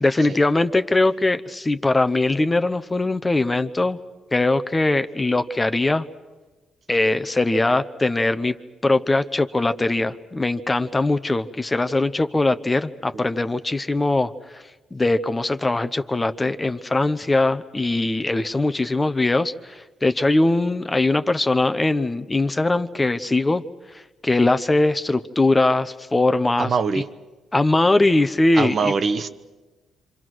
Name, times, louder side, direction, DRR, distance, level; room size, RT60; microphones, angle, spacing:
voice 1, 0.0-4.0 4.3-6.0 6.9-8.6 8.8-14.6 14.9-23.6 23.9-26.7 27.5-28.9, left 2 dB, 20° left, 10 dB, 0.9 m, -21 dB
voice 2, 26.6-27.1 28.5-29.3, right 5 dB, 50° right, 10 dB, 1.1 m, -23 dB
28.0 x 25.0 x 6.3 m, 1.2 s
cardioid pair, 90°, 0 cm